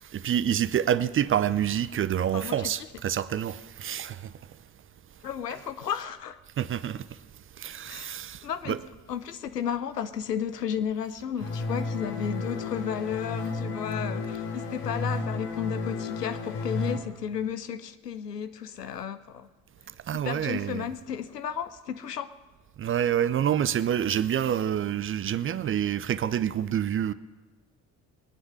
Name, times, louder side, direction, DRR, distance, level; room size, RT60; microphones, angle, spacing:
voice 1, 0.1-4.3 6.6-7.0 7.6-8.8 20.1-20.9 22.8-27.1, right 10 dB, 30° right, 0.5 m, -27 dB
voice 2, 2.3-2.7 5.2-6.4 7.9-8.1 8.4-8.8 9.1-19.5 20.1-22.3, left 8 dB, 85° left, 0.7 m, -33 dB
sound 1, 11.4-17.0, left 3 dB, 60° left, 2.1 m, -32 dB
20.5 x 9.6 x 6.2 m
figure-of-eight pair, 50°, 47 cm